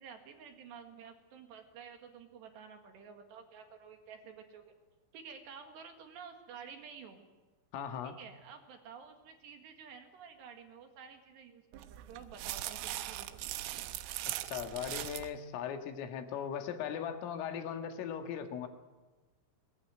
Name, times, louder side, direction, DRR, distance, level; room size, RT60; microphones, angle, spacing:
voice 1, 0.0-4.7 5.1-7.3 8.0-13.5, right 6 dB, 65° right, 5 dB, 3.8 m, -51 dB
voice 2, 7.7-8.2 14.5-18.7, left 8 dB, 75° left, 6 dB, 4.2 m, -38 dB
sound 1, 11.7-15.3, right 14 dB, 80° right, 3.6 m, -40 dB
21.0 x 20.5 x 9.2 m, 1.2 s
omnidirectional pair, 5.9 m